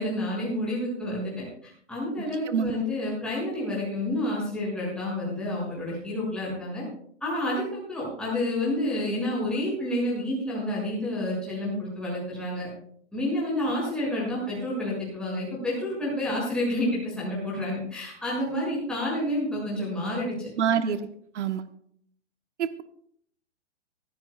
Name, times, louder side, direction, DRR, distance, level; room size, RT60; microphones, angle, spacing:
voice 1, 0.0-6.8 7.2-12.7 13.1-20.5, left 1 dB, 5° left, -7 dB, 7.1 m, -29 dB
voice 2, 2.2-2.7 20.6-21.0 21.3-21.7 22.6-22.8, right 7 dB, 85° right, 10 dB, 1.2 m, -26 dB
23.0 x 15.5 x 2.4 m, 0.64 s
hypercardioid pair, 170°, 34 cm